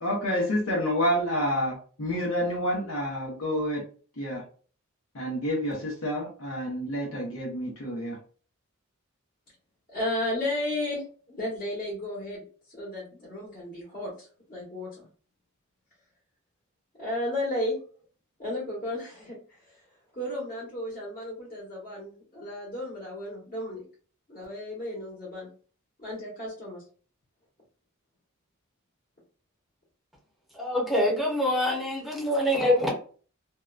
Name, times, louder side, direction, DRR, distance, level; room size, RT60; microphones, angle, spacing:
voice 1, 0.0-3.8 4.2-4.4 5.1-8.2, equal, 75° left, -3 dB, 0.9 m, -28 dB
voice 2, 9.9-11.0 11.3-15.1 17.0-17.8 18.4-19.8 20.1-23.8 24.3-25.5 26.0-26.8, left 1 dB, 40° left, -7 dB, 1.2 m, -34 dB
voice 3, 30.6-32.9, left 1 dB, ahead, -2 dB, 0.7 m, -25 dB
2.6 x 2.2 x 2.4 m, 0.42 s
head